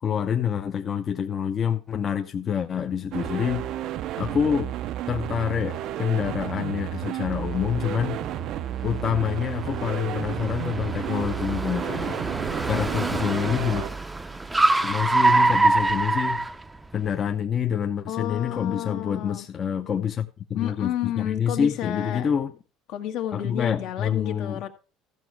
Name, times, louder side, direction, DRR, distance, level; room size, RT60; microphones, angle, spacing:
voice 1, 0.0-3.7 4.2-4.7 5.1-8.3 8.8-12.2 12.6-13.9 14.8-16.5 16.9-22.5 23.3-24.6, left 8 dB, 35° left, 0.8 m, -27 dB
sound 1, 3.1-13.9, right 12 dB, 60° right, 0.6 m, -32 dB
Car, 7.3-17.2, right 2 dB, 10° right, 0.6 m, -26 dB
voice 2, 18.1-19.5 20.5-22.3 22.9-24.7, left 11 dB, 65° left, 1.7 m, -31 dB
14.0 x 6.0 x 4.8 m
supercardioid pair, 115°, 0 cm